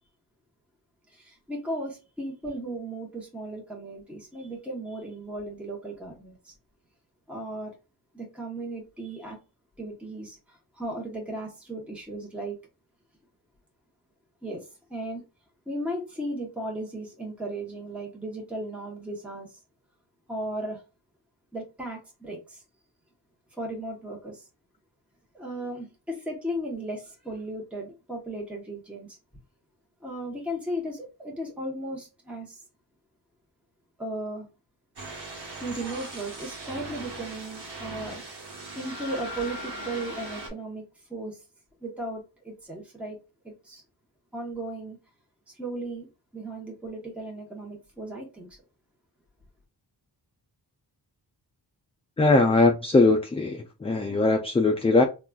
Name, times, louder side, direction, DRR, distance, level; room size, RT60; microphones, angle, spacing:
voice 1, 1.1-6.5 7.3-7.7 8.1-9.4 9.8-12.6 14.4-15.2 15.7-19.6 20.3-20.8 21.5-22.6 23.5-24.5 25.3-29.2 30.0-32.6 34.0-34.5 35.6-38.2 38.7-40.8 41.1-41.4 41.8-43.2 43.4-43.8 44.3-45.0 45.5-46.1 46.3-48.6, right 1 dB, 5° right, 0.9 m, -36 dB
sound 1, 35.0-40.5, right 2 dB, 65° right, 1.2 m, -39 dB
voice 2, 52.2-55.0, left 3 dB, 15° left, 0.3 m, -21 dB
3.7 x 2.4 x 2.3 m
wide cardioid pair, 85°, 42 cm